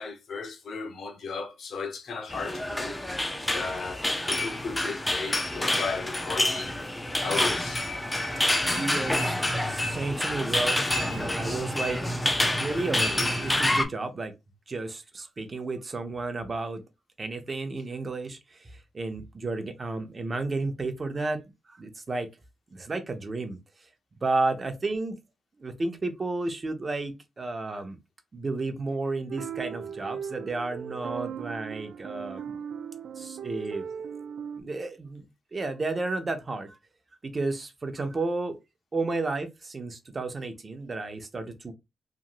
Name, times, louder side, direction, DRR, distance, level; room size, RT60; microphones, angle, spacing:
voice 1, 0.0-2.9 3.5-6.8 7.2-7.8, left 4 dB, 70° left, 0.8 m, -35 dB
sound 1, 2.3-13.8, left 1 dB, 15° left, 0.6 m, -28 dB
voice 2, 8.7-9.4 9.7-12.0 12.5-14.3 14.7-16.8 17.2-22.3 22.7-23.6 24.2-25.2 25.6-28.0 28.3-32.6 33.2-33.9 34.6-36.8 37.2-38.6 38.9-41.7, right 3 dB, 40° right, 0.7 m, -32 dB
sound 2, 29.3-34.6, right 7 dB, 75° right, 0.3 m, -37 dB
3.0 x 2.6 x 2.5 m
cardioid pair, 60°, 0 cm